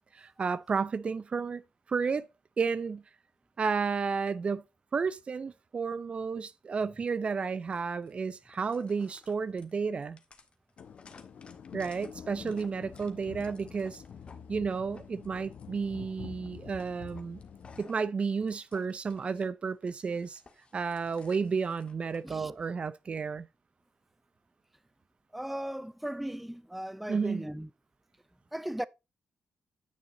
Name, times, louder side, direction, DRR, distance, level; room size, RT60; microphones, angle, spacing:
voice 1, 0.1-1.6 1.9-2.3 2.6-3.0 3.6-4.6 4.9-10.2 11.7-14.0 14.5-17.4 17.8-20.4 20.7-23.5 27.1-27.4, right 5 dB, 45° right, 0.5 m, -32 dB
sound 1, 6.8-7.1 7.7-8.1 8.4-14.4 14.7-15.8 16.3-16.5 16.8-19.5 19.8-22.4, left 4 dB, 45° left, 1.5 m, -57 dB
sound 2, 10.8-17.8, left 7 dB, 65° left, 0.9 m, -47 dB
voice 2, 22.2-22.6 25.3-27.7 28.5-28.8, right 1 dB, 5° right, 0.6 m, -37 dB
9.5 x 6.4 x 3.9 m
supercardioid pair, 60°, 3 cm